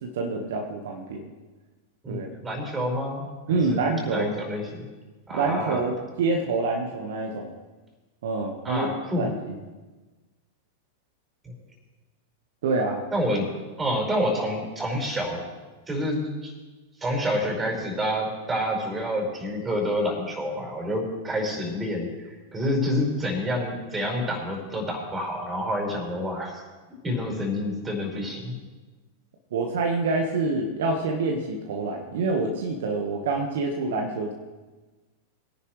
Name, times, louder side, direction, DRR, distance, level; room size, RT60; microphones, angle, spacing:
voice 1, 0.0-1.3 2.1-2.3 3.5-4.3 5.3-7.5 8.2-8.9 9.2-9.6 12.6-13.0 29.5-34.3, right 3 dB, 65° right, 1 dB, 1.4 m, -27 dB
voice 2, 2.0-4.8 5.3-5.8 8.6-9.3 11.4-11.5 13.1-13.5 13.8-15.4 15.9-16.5 17.0-22.1 22.5-26.6 27.0-28.5, equal, 15° right, 0 dB, 5.1 m, -28 dB
22.5 x 10.5 x 3.2 m, 1.2 s
figure-of-eight pair, 95°, 0 cm